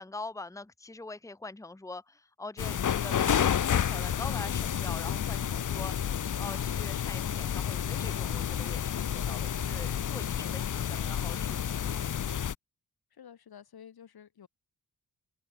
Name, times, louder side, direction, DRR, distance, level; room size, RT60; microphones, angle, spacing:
voice 1, 0.0-5.9 6.4-12.1, left 3 dB, 10° left, 1.1 m, -43 dB
sound 1, 2.6-12.5, left 9 dB, 55° left, 0.9 m, -30 dB
voice 2, 13.1-14.5, left 8 dB, 85° left, 5.1 m, -51 dB
open air
cardioid pair, 80°, 36 cm